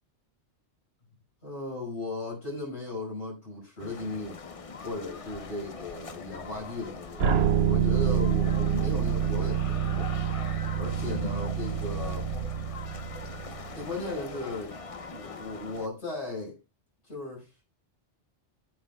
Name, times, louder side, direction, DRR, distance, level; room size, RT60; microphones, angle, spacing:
voice 1, 1.4-4.4 4.8-7.2 7.7-10.1 10.8-12.3 13.7-14.7 15.1-16.6 17.1-17.5, left 2 dB, 75° left, 5.8 m, -36 dB
sound 1, 3.8-15.9, left 4 dB, 35° left, 0.7 m, -41 dB
sound 2, 7.2-14.1, right 8 dB, 65° right, 1.0 m, -27 dB
17.5 x 8.9 x 2.3 m
omnidirectional pair, 1.2 m